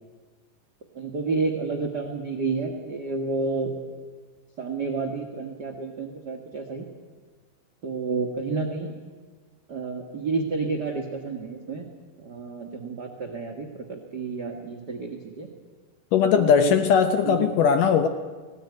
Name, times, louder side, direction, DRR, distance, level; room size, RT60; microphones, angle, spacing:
voice 1, 0.9-3.7 4.6-6.8 7.8-8.9 9.7-11.9 12.2-15.5 16.3-16.8 17.2-17.5, right 4 dB, 70° right, 2 dB, 0.9 m, -30 dB
voice 2, 16.1-18.1, left 7 dB, 75° left, 8 dB, 2.1 m, -19 dB
18.5 x 17.5 x 9.5 m, 1.4 s
omnidirectional pair, 4.6 m